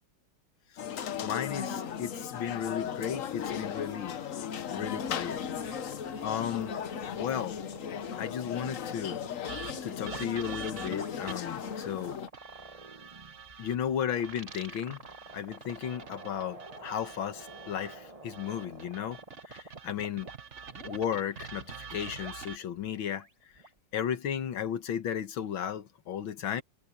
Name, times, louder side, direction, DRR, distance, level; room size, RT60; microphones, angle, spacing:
sound 1, 0.8-12.3, left 8 dB, 55° left, 1.0 m, -37 dB
voice 1, 1.2-4.2 4.6-5.4 5.8-5.9 6.2-6.8 7.2-7.6 8.2-9.2 9.8-12.2 13.6-15.0 15.3-19.2 19.5-20.3 20.8-23.3 23.9-26.6, left 9 dB, 75° left, 2.0 m, -34 dB
sound 2, 5.0-9.3 9.6-20.3 20.6-21.0 21.6-23.8, right 2 dB, 20° right, 1.6 m, -49 dB
sound 3, 9.5-11.6 12.3-13.8 14.2-18.0 18.3-22.6, right 6 dB, 35° right, 1.6 m, -46 dB
omnidirectional pair, 2.3 m